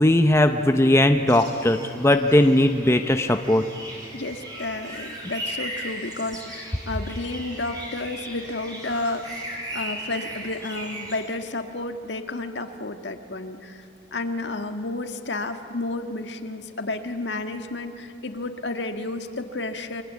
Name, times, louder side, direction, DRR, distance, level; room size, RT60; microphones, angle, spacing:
voice 1, 0.0-3.6, left 1 dB, 15° left, 6 dB, 0.8 m, -19 dB
sound 1, 1.3-11.2, right 1 dB, 20° right, 5.6 m, -37 dB
voice 2, 4.1-20.0, left 2 dB, 70° left, 6 dB, 1.8 m, -31 dB
28.5 x 24.5 x 8.5 m, 2.4 s
head